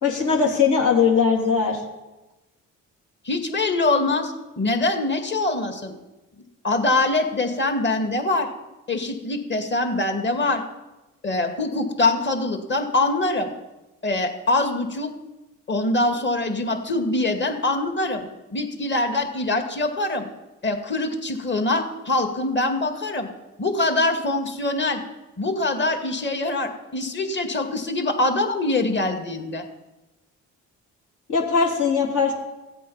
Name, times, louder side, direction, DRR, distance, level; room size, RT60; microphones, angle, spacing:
voice 1, 0.0-1.8 31.3-32.3, left 5 dB, 70° left, 0 dB, 3.3 m, -20 dB
voice 2, 3.2-5.9 6.6-8.5 8.9-10.6 11.2-13.5 14.0-15.1 15.7-20.3 20.6-23.3 23.6-25.0 25.4-29.7, left 2 dB, 35° left, 5 dB, 2.3 m, -24 dB
15.5 x 8.4 x 5.7 m, 1.0 s
supercardioid pair, 75°, 32 cm